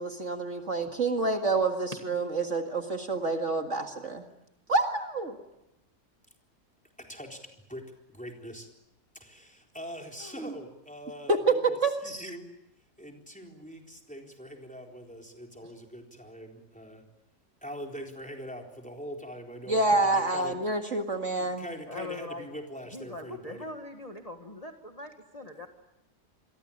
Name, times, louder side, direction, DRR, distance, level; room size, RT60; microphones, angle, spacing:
voice 1, 0.0-4.2 4.7-5.4 10.4-10.5 11.3-12.2 19.7-21.6, right 3 dB, 45° right, 4 dB, 2.2 m, -27 dB
voice 2, 7.0-8.7 9.1-12.5 13.0-17.0 17.6-20.5 21.1-23.7 25.6-25.7, equal, 5° left, 2 dB, 4.0 m, -43 dB
voice 3, 21.9-22.5 22.9-25.7, left 2 dB, 25° left, 4 dB, 1.7 m, -41 dB
27.5 x 23.5 x 8.7 m, 0.87 s
omnidirectional pair, 1.8 m